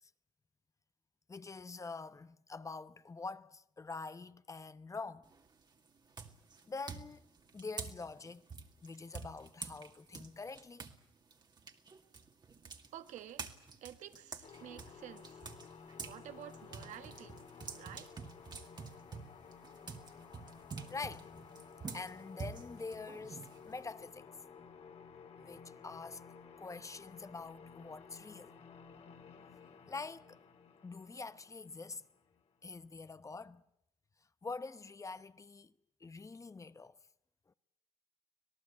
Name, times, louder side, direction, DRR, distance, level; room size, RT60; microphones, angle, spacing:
voice 1, 1.3-5.2 6.7-8.4 8.8-10.9 20.6-24.3 25.4-26.2 26.6-28.5 29.9-30.4 30.8-32.0 32.6-33.6 34.4-35.7 36.0-37.0, left 4 dB, 25° left, 0.9 m, -46 dB
sound 1, 5.2-5.6 6.1-11.0 11.3-16.2 16.5-23.9, right 5 dB, 35° right, 2.1 m, -47 dB
voice 2, 12.9-13.5 13.8-15.5 16.0-17.4 17.7-18.2, right 11 dB, 70° right, 1.3 m, -50 dB
sound 2, 14.4-32.7, left 6 dB, 55° left, 2.4 m, -55 dB
26.0 x 18.0 x 8.5 m
cardioid pair, 85°, 13 cm